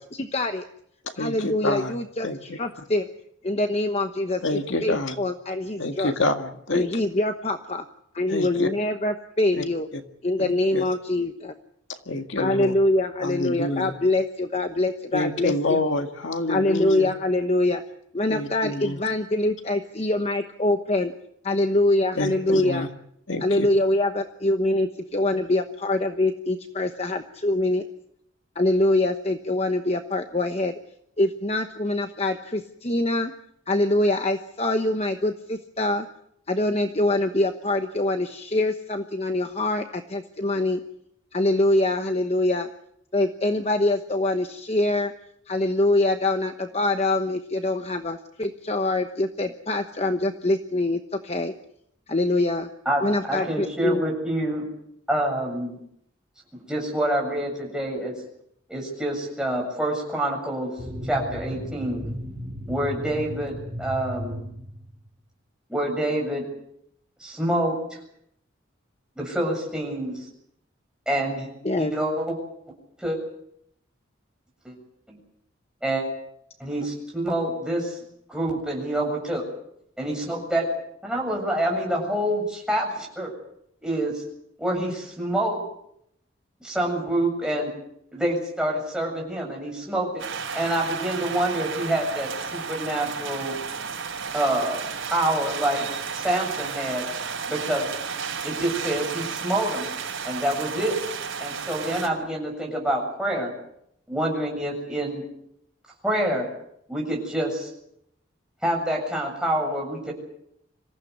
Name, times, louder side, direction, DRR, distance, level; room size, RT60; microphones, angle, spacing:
voice 1, 0.2-0.6 1.2-3.1 3.4-6.1 6.7-7.9 8.1-9.9 10.2-11.5 12.4-15.8 16.5-17.8 18.1-21.1 21.4-22.9 23.4-27.9 28.5-30.7 31.2-33.3 33.7-36.1 36.5-40.8 41.3-42.7 43.1-45.1 45.5-51.5 52.1-52.7 53.0-54.0 71.6-71.9, left 2 dB, 30° left, 7 dB, 1.1 m, -24 dB
voice 2, 1.2-1.9 2.2-2.6 4.4-5.2 5.8-7.0 8.3-8.7 9.5-9.6 9.9-10.0 10.4-10.8 12.1-12.7 13.2-13.9 15.1-17.1 18.3-19.0 22.2-22.9 23.3-23.7, left 2 dB, 75° left, 6 dB, 1.9 m, -27 dB
voice 3, 52.9-54.6 55.1-55.8 56.5-58.2 58.7-60.7 61.0-62.0 62.7-64.4 65.7-66.4 67.2-68.0 69.2-70.3 71.1-71.5 71.8-72.4 73.0-73.2 74.6-74.8 75.1-75.2 75.8-76.0 76.6-78.0 78.3-79.4 80.0-80.7 81.0-83.3 83.8-84.2 84.6-85.6 86.6-87.7 88.1-90.1 90.5-93.6 94.3-94.8 95.1-95.9 96.1-97.1 97.5-97.9 98.4-99.9 100.2-101.0 101.4-103.5 104.1-105.2 106.0-106.5 106.9-107.7 108.6-110.1, right 1 dB, 5° right, -1 dB, 7.4 m, -27 dB
sound 1, 60.8-65.1, equal, 45° right, 6.4 m, -35 dB
sound 2, 90.2-102.1, right 6 dB, 85° right, 5.2 m, -33 dB
26.0 x 15.5 x 9.5 m, 0.74 s
head